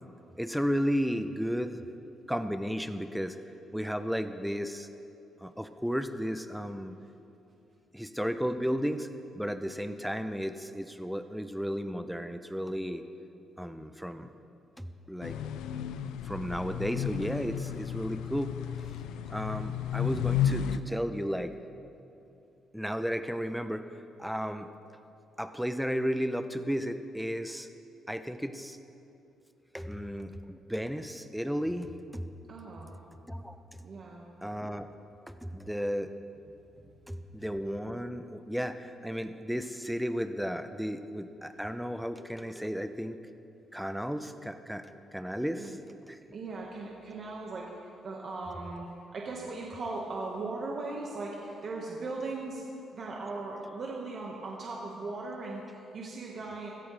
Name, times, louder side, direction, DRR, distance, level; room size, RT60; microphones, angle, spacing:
voice 1, 0.4-1.8 2.3-3.4 3.7-4.9 5.4-6.9 7.9-9.1 9.4-13.0 13.6-14.3 14.8-15.4 16.2-18.5 19.3-21.5 22.7-23.8 24.2-24.7 25.4-27.7 28.1-28.8 29.7-31.9 32.1-32.3 33.3-33.6 34.4-34.9 35.3-36.1 37.1-43.2 43.7-46.2, equal, ahead, 9 dB, 0.7 m, -33 dB
sound 1, 15.2-20.8, left 9 dB, 90° left, 0.4 m, -33 dB
voice 2, 32.5-32.9 33.8-34.2 36.8-36.9 45.5-45.8 46.3-48.9 49.1-52.6 52.9-56.7, right 3 dB, 50° right, -2 dB, 1.6 m, -38 dB
17.0 x 14.0 x 3.4 m, 2.8 s
cardioid pair, 90°, 0 cm